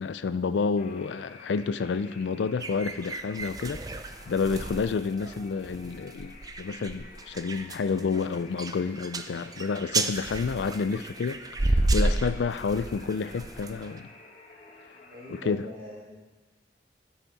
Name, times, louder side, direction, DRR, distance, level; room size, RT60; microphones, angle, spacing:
voice 1, 0.0-3.8 4.3-14.1 15.3-15.7, left 5 dB, 85° left, 13 dB, 0.4 m, -29 dB
sound 1, 0.8-15.5, left 2 dB, 40° left, 1.3 m, -51 dB
sound 2, 2.6-14.0, right 2 dB, 20° right, 0.4 m, -32 dB
voice 2, 15.1-16.4, left 2 dB, 55° right, -11 dB, 2.4 m, -42 dB
16.0 x 5.6 x 4.1 m, 1.3 s
head